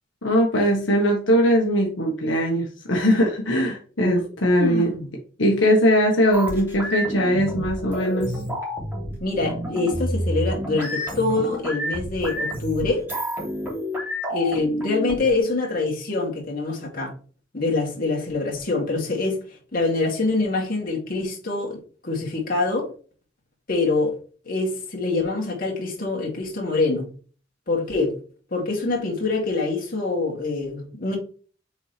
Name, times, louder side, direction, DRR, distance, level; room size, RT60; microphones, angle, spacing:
voice 1, 0.2-4.9 5.4-8.4, equal, 80° left, 1.5 m, -20 dB
voice 2, 4.6-5.1 9.2-13.1 14.3-17.1 17.5-22.9 23.7-24.1 24.5-27.1 27.7-28.1 28.5-31.2, left 3 dB, 50° left, 2.6 m, -25 dB
sound 1, 6.3-15.4, equal, 10° right, 3.1 m, -29 dB
7.1 x 4.4 x 3.4 m
head